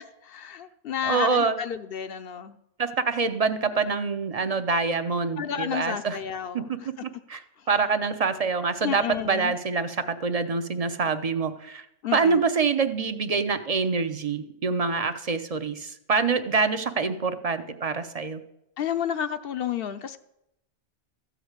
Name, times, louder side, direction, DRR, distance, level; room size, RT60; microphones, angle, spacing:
voice 1, 0.3-2.6 5.4-6.7 8.8-9.5 12.0-12.4 18.8-20.2, left 9 dB, 65° left, 10 dB, 0.8 m, -31 dB
voice 2, 1.0-1.6 2.8-6.2 6.5-6.8 7.3-7.4 7.7-11.8 12.1-18.4, right 4 dB, 40° right, 10 dB, 0.6 m, -25 dB
13.5 x 5.0 x 8.0 m, 0.83 s
omnidirectional pair, 1.2 m